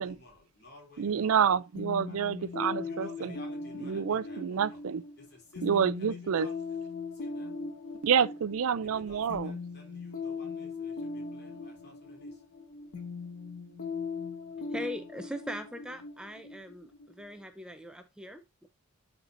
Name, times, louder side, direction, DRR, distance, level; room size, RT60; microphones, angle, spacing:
voice 1, 0.0-1.3 2.1-2.5 2.8-4.8 5.2-6.6 7.1-7.5 8.8-12.4, left 2 dB, 50° left, 3.2 m, -54 dB
voice 2, 1.0-3.3 3.8-5.0 5.6-6.5 8.0-9.6, right 7 dB, 75° right, 0.4 m, -28 dB
sound 1, 1.8-17.3, left 4 dB, 90° left, 2.1 m, -40 dB
voice 3, 14.7-18.7, equal, 5° right, 0.5 m, -41 dB
12.0 x 4.4 x 2.6 m
head